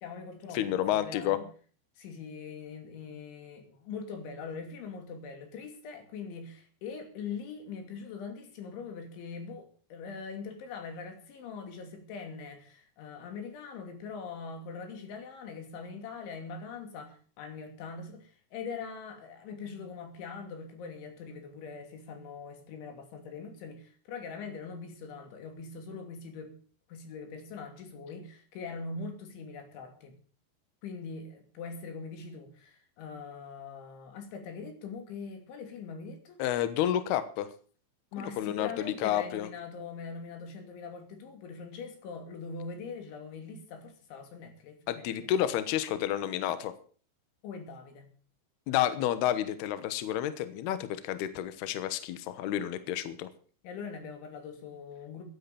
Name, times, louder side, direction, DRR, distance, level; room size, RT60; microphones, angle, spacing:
voice 1, 0.0-1.5 2.0-26.5 26.9-30.1 30.8-36.4 38.1-45.3 47.4-48.1 53.6-55.2, left 5 dB, 90° left, 5.2 m, -42 dB
voice 2, 0.5-1.4 36.4-37.5 38.2-39.5 44.9-46.7 48.7-53.3, left 11 dB, 70° left, 2.9 m, -30 dB
15.5 x 10.0 x 7.0 m
omnidirectional pair, 5.2 m